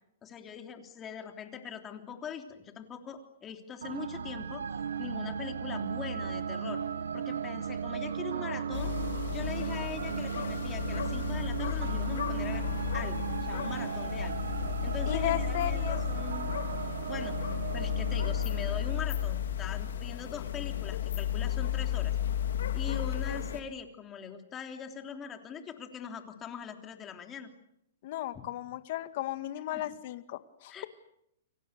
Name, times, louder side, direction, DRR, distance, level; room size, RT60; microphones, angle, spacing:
voice 1, 0.2-4.7 5.0-6.8 7.1-9.0 9.3-12.7 12.9-14.3 14.8-16.6 17.1-17.4 17.7-22.2 22.7-27.5 28.4-28.5 29.7-29.9 30.7-30.9, left 7 dB, 20° left, 5 dB, 3.3 m, -42 dB
sound 1, 3.8-20.0, right 7 dB, 90° right, 0.9 m, -36 dB
sound 2, 8.7-23.6, left 10 dB, 80° left, 3.1 m, -33 dB
voice 2, 15.1-16.0 28.0-30.9, left 12 dB, 50° left, 11 dB, 2.0 m, -35 dB
29.5 x 24.5 x 6.8 m, 0.78 s
hypercardioid pair, 150°, 0 cm